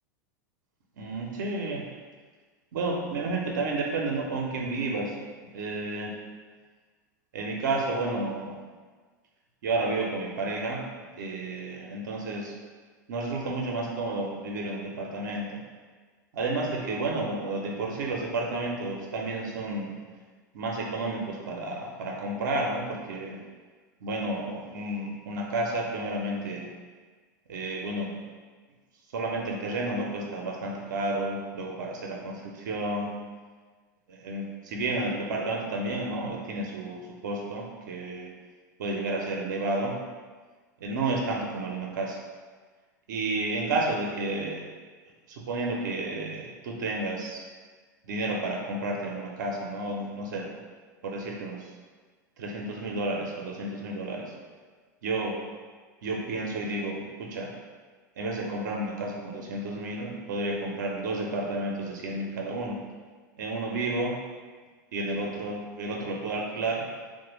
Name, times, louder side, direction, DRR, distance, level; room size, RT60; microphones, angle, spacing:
voice 1, 1.0-1.8 2.7-5.1 5.5-6.1 7.3-8.6 9.6-10.8 11.2-12.5 13.1-15.5 16.3-19.9 20.5-23.4 24.0-26.7 27.5-28.1 29.1-33.1 34.1-38.3 38.8-39.9 40.8-42.2 43.1-44.6 45.3-47.4 48.1-50.6 51.0-51.6 52.4-54.2 55.0-55.4 56.0-57.5 58.2-62.8 63.4-64.1 64.9-66.9, right 2 dB, 75° right, 0 dB, 0.5 m, -31 dB
3.1 x 2.1 x 3.0 m, 1.5 s
hypercardioid pair, 90°, 10 cm